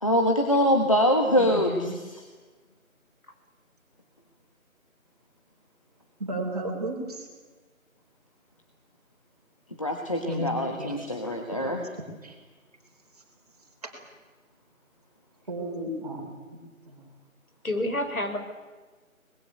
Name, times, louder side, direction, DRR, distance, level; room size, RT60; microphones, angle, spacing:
voice 1, 0.0-2.2 9.8-11.8, equal, 25° left, 2 dB, 1.5 m, -24 dB
voice 2, 1.4-2.0 17.6-18.4, left 1 dB, 80° left, 5 dB, 5.5 m, -30 dB
voice 3, 6.2-7.3 10.2-11.1 11.5-11.7 12.2-12.3 13.8-13.9 15.5-16.6 16.9-17.1, right 1 dB, 30° right, 1 dB, 4.4 m, -34 dB
24.5 x 20.5 x 8.3 m, 1.3 s
figure-of-eight pair, 170°, 42 cm